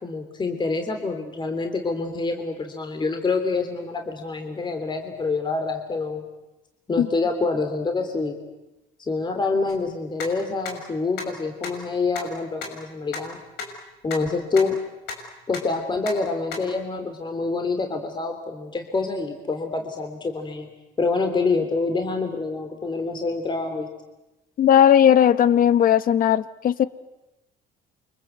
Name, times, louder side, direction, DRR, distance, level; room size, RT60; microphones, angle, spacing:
voice 1, 0.0-6.2 6.9-8.4 9.1-13.4 14.0-14.8 15.5-20.7 21.0-23.9, left 3 dB, 25° left, 5 dB, 3.4 m, -26 dB
sound 1, 9.7-9.8 10.2-10.3 10.7-10.8 11.2-11.3 11.6-11.7 12.2-12.3 12.6-12.7 13.1-13.2 13.6-13.7 14.1-14.2 14.6-14.7 15.1-15.2 15.5-15.6 16.1-16.2 16.5-16.6, left 5 dB, 85° left, 6.6 m, -32 dB
voice 2, 24.6-26.8, left 9 dB, 55° left, 14 dB, 1.3 m, -17 dB
29.0 x 25.5 x 8.1 m, 1.0 s
cardioid pair, 110°, 17 cm